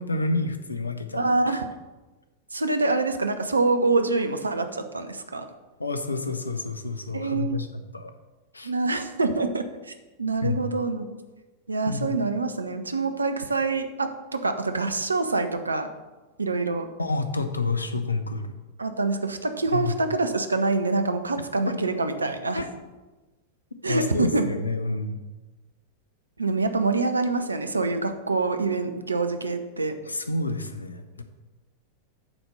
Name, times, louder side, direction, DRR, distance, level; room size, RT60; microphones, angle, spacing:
voice 1, 0.0-1.2 1.5-1.6 5.8-7.7 7.9-8.1 8.5-8.7 10.4-10.6 11.9-12.2 17.0-18.5 19.7-19.9 21.7-21.8 22.5-22.7 23.8-25.2 30.0-31.2, left 3 dB, 80° left, 8 dB, 0.7 m, -29 dB
voice 2, 1.1-1.7 2.5-5.5 7.1-7.6 8.6-9.9 10.2-11.1 11.7-15.9 16.4-16.9 18.8-22.6 23.8-24.4 26.4-30.0, right 3 dB, 80° right, 8 dB, 0.7 m, -25 dB
8.8 x 4.3 x 6.7 m, 1.2 s
figure-of-eight pair, 90°, 0 cm